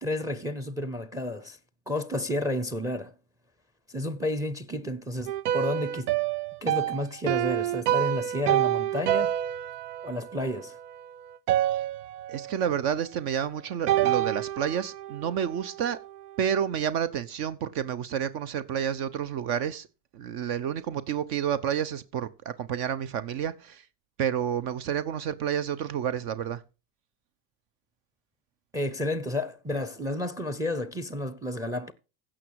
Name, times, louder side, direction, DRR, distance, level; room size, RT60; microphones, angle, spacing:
voice 1, 0.0-1.6 1.9-3.1 3.9-6.1 6.6-9.3 10.0-10.8 28.7-31.9, left 1 dB, 10° right, 0.6 m, -31 dB
sound 1, 5.3-11.1 11.5-12.6 13.9-16.1, right 12 dB, 90° right, 0.7 m, -28 dB
voice 2, 12.3-16.0 16.4-19.9 20.1-23.8 24.2-26.6, right 9 dB, 55° right, 0.9 m, -30 dB
16.0 x 6.2 x 4.7 m
supercardioid pair, 135°, 45 cm